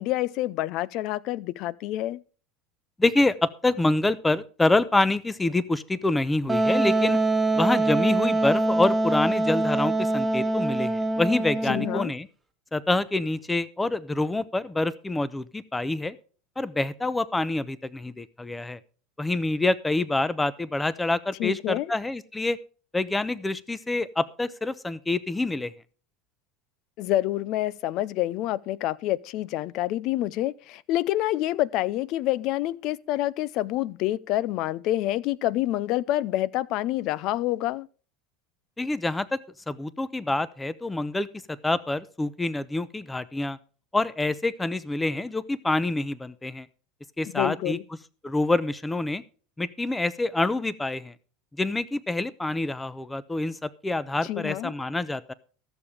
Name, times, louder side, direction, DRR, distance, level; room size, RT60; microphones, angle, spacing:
voice 1, 0.0-2.2 11.7-12.1 21.4-21.9 27.0-37.9 47.3-47.8 54.2-54.7, left 15 dB, 55° left, 0.5 m, -27 dB
voice 2, 3.0-7.2 7.5-12.3 12.7-16.2 16.6-18.8 19.2-22.6 22.9-25.7 38.8-39.4 39.7-43.6 43.9-46.7 47.2-47.8 48.2-49.2 49.6-51.1 51.6-55.3, left 2 dB, 10° left, 0.6 m, -26 dB
Wind instrument woodwind instrument, 6.5-12.0, right 2 dB, 5° right, 1.5 m, -24 dB
14.0 x 7.1 x 4.9 m
supercardioid pair, 115°, 0 cm